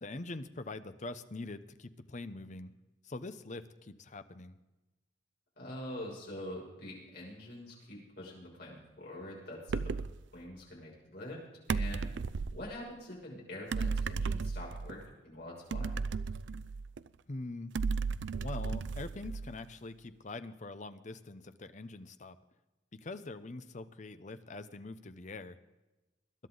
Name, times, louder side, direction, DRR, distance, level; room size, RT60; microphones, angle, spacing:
voice 1, 0.0-2.7 3.0-4.6 17.3-17.7 18.4-22.4 22.9-25.6, left 2 dB, 40° left, 11 dB, 0.7 m, -43 dB
voice 2, 5.6-9.9 10.3-11.4 11.7-12.1 12.5-16.0, left 1 dB, 55° left, -3 dB, 6.2 m, -45 dB
sound 1, 9.7-10.2 11.7-12.6 13.7-15.0 15.7-17.1 17.7-19.7, right 4 dB, 75° right, 0.5 m, -34 dB
21.0 x 11.5 x 3.9 m, 1.1 s
head